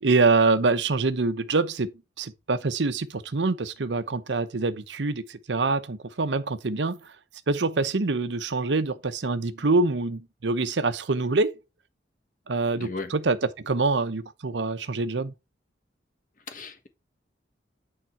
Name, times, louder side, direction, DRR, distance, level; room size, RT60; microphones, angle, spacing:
voice 1, 0.0-7.1 7.5-11.5 12.5-15.3, right 3 dB, 80° right, 0.8 m, -25 dB
voice 2, 12.8-13.1 16.5-16.9, left 3 dB, 45° left, 1.4 m, -36 dB
8.9 x 3.9 x 4.5 m
head